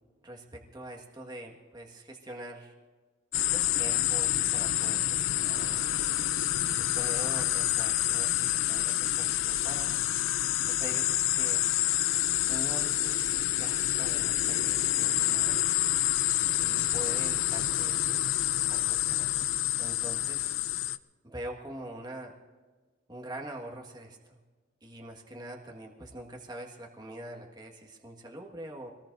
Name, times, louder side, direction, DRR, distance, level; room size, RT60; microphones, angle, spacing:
voice 1, 0.2-2.7 3.5-6.0 6.8-10.0 10.7-11.6 12.5-15.6 16.6-18.2 18.7-19.5 19.8-20.6 21.2-22.3 23.1-24.4 24.8-28.9, right 1 dB, 20° right, 0 dB, 1.6 m, -44 dB
sound 1, 3.3-21.0, left 13 dB, 90° left, 0.5 m, -28 dB
25.0 x 19.0 x 2.6 m, 1.3 s
head